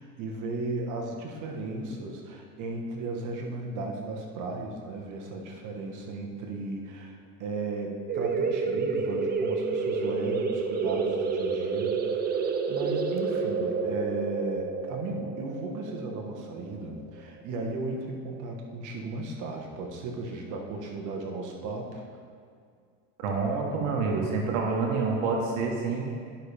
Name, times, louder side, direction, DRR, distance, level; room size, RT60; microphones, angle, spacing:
voice 1, 0.0-22.2, right 2 dB, 50° right, 1 dB, 1.3 m, -36 dB
sound 1, 8.1-17.4, right 4 dB, 25° right, 0.6 m, -29 dB
voice 2, 23.2-26.1, right 4 dB, 90° right, 0 dB, 1.3 m, -27 dB
10.5 x 5.8 x 3.4 m, 2.2 s
supercardioid pair, 120°, 37 cm